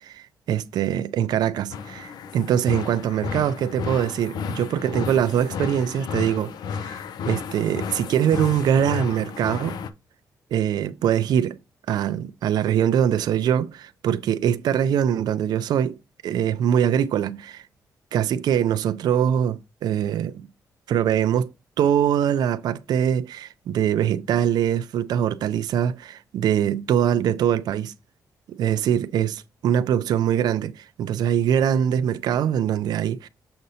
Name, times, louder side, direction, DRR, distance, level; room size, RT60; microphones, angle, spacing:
voice 1, 0.0-9.8 10.5-11.6 11.9-16.0 16.2-17.7 18.1-20.5 20.9-21.5 21.8-27.9 28.5-33.3, right 9 dB, 75° right, 0.4 m, -23 dB
sound 1, 1.7-9.9, left 6 dB, 75° left, 0.6 m, -33 dB
6.7 x 5.1 x 2.8 m
cardioid pair, 135°, 7 cm